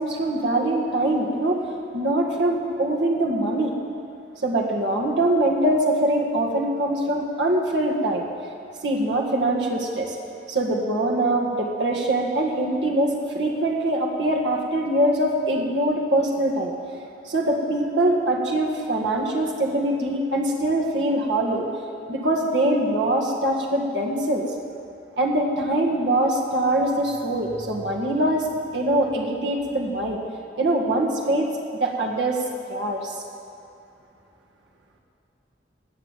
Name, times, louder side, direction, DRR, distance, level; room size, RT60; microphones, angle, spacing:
voice 1, 0.0-1.6 1.9-3.7 4.4-8.2 8.8-10.2 10.5-16.7 17.3-21.7 22.1-24.5 25.2-28.5 28.7-30.2 30.6-31.5 31.8-33.2, right 1 dB, 85° right, -1 dB, 1.9 m, -23 dB
17.5 x 7.3 x 9.0 m, 2.7 s
head